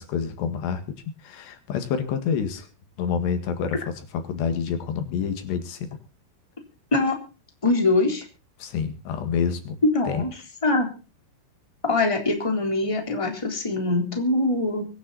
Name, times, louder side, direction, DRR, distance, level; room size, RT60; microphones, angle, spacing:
voice 1, 0.1-0.8 1.2-2.7 3.0-3.9 4.2-6.0 8.6-9.8 10.1-10.2, left 7 dB, 75° left, 8 dB, 4.0 m, -27 dB
voice 2, 7.6-8.2 9.8-10.3 10.6-10.9 11.8-14.9, left 2 dB, 10° left, 3 dB, 3.1 m, -23 dB
24.0 x 9.8 x 4.1 m, 0.34 s
omnidirectional pair, 4.9 m